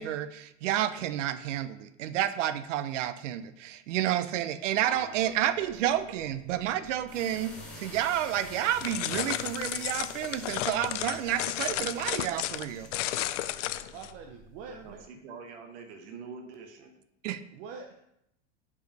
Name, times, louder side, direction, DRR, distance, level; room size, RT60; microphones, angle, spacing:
voice 1, 0.0-12.9 17.2-17.4, right 11 dB, 85° right, 13 dB, 0.6 m, -30 dB
voice 2, 4.8-5.3 5.6-5.7 13.9-15.0 17.5-17.9, right 6 dB, 35° right, 3 dB, 0.5 m, -43 dB
sound 1, 4.9-15.0, left 2 dB, 5° left, 1.5 m, -48 dB
sound 2, 8.8-14.1, left 14 dB, 85° left, 0.5 m, -33 dB
voice 3, 14.6-16.9, right 5 dB, 70° right, 4 dB, 1.1 m, -45 dB
5.3 x 4.8 x 5.2 m, 0.80 s
supercardioid pair, 155°, 36 cm